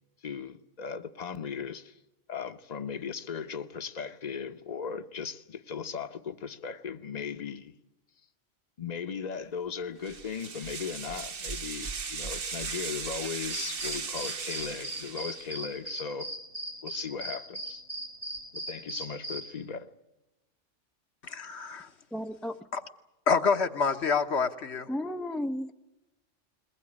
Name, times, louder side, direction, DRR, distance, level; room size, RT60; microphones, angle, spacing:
voice 1, 0.2-2.0 2.3-7.7 8.8-16.3 16.8-17.8 18.5-19.9, left 6 dB, 35° left, 1.0 m, -37 dB
sound 1, 10.0-15.6, right 5 dB, 50° right, 1.2 m, -37 dB
sound 2, 13.5-19.5, right 1 dB, 85° right, 5.0 m, -38 dB
voice 2, 21.2-21.9 22.7-22.8 23.3-24.9, left 5 dB, 65° left, 1.4 m, -27 dB
voice 3, 22.1-22.7 24.9-25.7, left 1 dB, ahead, 0.5 m, -33 dB
22.0 x 19.5 x 9.9 m
omnidirectional pair, 1.3 m